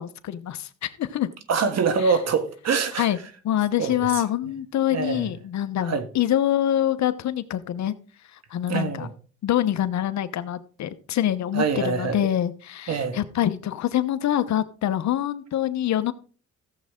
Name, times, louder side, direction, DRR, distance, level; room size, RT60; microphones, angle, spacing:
voice 1, 0.0-1.3 2.0-2.2 3.0-3.2 3.4-7.9 8.3-9.1 9.4-16.1, left 11 dB, 65° left, 0.9 m, -25 dB
voice 2, 1.5-3.1 3.8-3.9 4.9-5.3 5.8-6.1 8.7-9.1 11.5-12.3 12.9-13.2, right 5 dB, 60° right, 1.6 m, -24 dB
15.0 x 7.5 x 3.7 m
cardioid pair, 90°, 30 cm